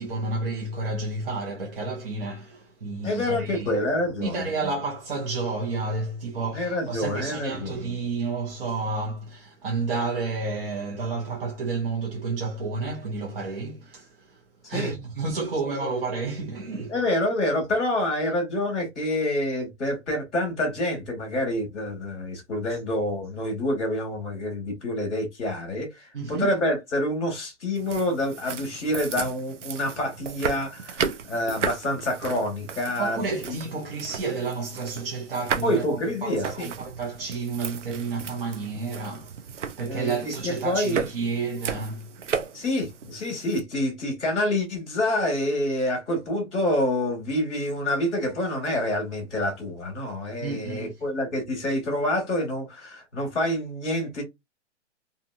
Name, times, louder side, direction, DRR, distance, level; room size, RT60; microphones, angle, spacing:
voice 1, 0.0-3.7 4.2-14.4 14.7-16.9 26.1-26.5 33.0-42.1 50.4-50.9, right 3 dB, 50° right, 0.9 m, -31 dB
voice 2, 3.0-4.5 6.5-7.8 14.7-14.9 16.9-33.6 35.6-36.7 39.9-41.0 42.5-54.2, left 1 dB, ahead, 0.5 m, -27 dB
sound 1, 27.8-43.6, right 6 dB, 75° right, 0.7 m, -35 dB
2.7 x 2.5 x 2.6 m
hypercardioid pair, 175°, 36 cm